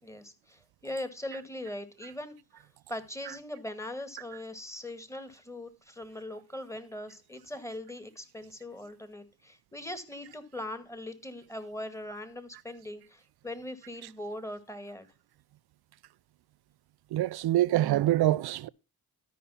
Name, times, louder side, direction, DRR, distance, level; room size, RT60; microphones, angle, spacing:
voice 1, 0.0-15.1, left 1 dB, 5° left, 2.0 m, -41 dB
voice 2, 17.1-18.7, right 14 dB, 80° right, 0.6 m, -25 dB
13.0 x 5.2 x 5.7 m
cardioid pair, 65°, 38 cm